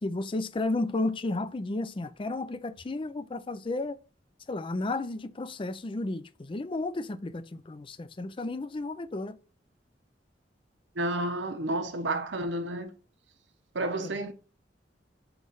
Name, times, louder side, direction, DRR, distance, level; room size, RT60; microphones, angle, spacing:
voice 1, 0.0-4.0 4.5-9.4, left 2 dB, 30° left, 0.4 m, -33 dB
voice 2, 11.0-12.9 13.7-14.3, right 1 dB, 85° right, 0.9 m, -31 dB
5.8 x 3.1 x 5.4 m
head